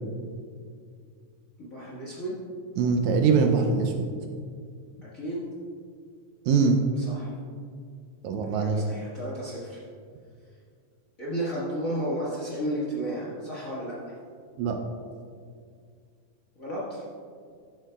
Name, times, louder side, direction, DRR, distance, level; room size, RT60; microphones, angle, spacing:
voice 1, 1.6-2.4 5.0-5.4 6.9-7.3 8.5-9.8 11.2-14.1 16.6-17.0, right 1 dB, 40° left, -8 dB, 1.3 m, -33 dB
voice 2, 2.8-4.0 6.5-6.9 8.2-8.8 14.6-14.8, right 5 dB, 80° right, 4 dB, 1.8 m, -22 dB
12.5 x 7.6 x 2.3 m, 2.2 s
omnidirectional pair, 3.5 m